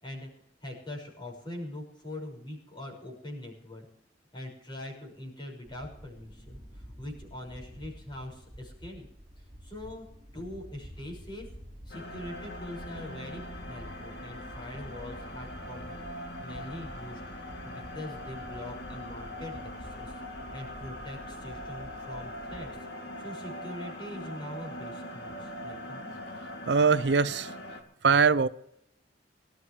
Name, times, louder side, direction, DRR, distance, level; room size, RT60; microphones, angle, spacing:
voice 1, 0.6-3.9 4.3-9.1 9.6-10.1 10.3-11.5 11.8-13.4 13.7-16.0 16.4-17.2 17.6-22.7 23.2-26.0, left 1 dB, 25° left, 6.0 m, -43 dB
sound 1, 5.6-22.8, equal, 25° right, 4.9 m, -49 dB
sound 2, 11.9-27.8, left 1 dB, 70° left, 2.5 m, -42 dB
voice 2, 26.7-27.6 28.0-28.5, right 5 dB, 70° right, 0.6 m, -22 dB
24.0 x 12.5 x 3.3 m
head